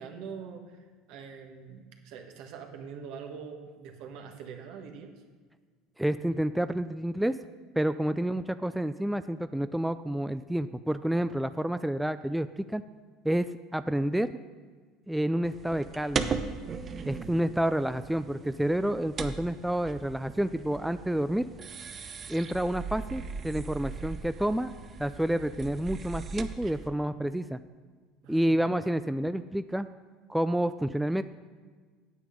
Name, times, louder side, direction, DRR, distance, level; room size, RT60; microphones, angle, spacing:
voice 1, 0.0-5.1 17.0-17.3 28.2-28.6, right 6 dB, 70° right, 4 dB, 1.4 m, -44 dB
voice 2, 6.0-7.4 7.8-12.8 13.2-14.3 15.1-16.4 17.1-21.5 22.3-24.7 25.0-27.6 28.3-29.9 30.3-31.2, right 1 dB, 5° right, 11 dB, 0.3 m, -29 dB
sound 1, 15.4-26.9, right 5 dB, 35° right, 0.7 m, -38 dB
9.2 x 8.4 x 5.0 m, 1.5 s
supercardioid pair, 95°, 0 cm